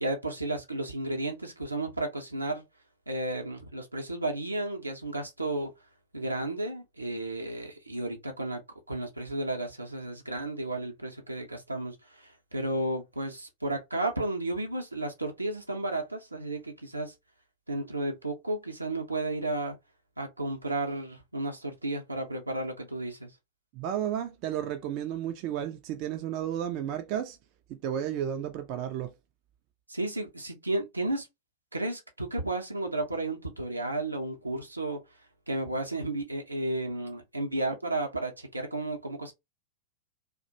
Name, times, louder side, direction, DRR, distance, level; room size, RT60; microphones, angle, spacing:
voice 1, 0.0-2.6 3.1-5.7 6.1-8.6 8.9-17.1 17.7-19.8 20.2-23.3 29.9-31.3 31.7-35.0 35.5-39.3, right 2 dB, 85° right, 0.6 m, -33 dB
voice 2, 23.7-27.4 27.7-29.1, right 10 dB, 45° right, 0.3 m, -32 dB
2.4 x 2.1 x 2.7 m
figure-of-eight pair, 90°, 0 cm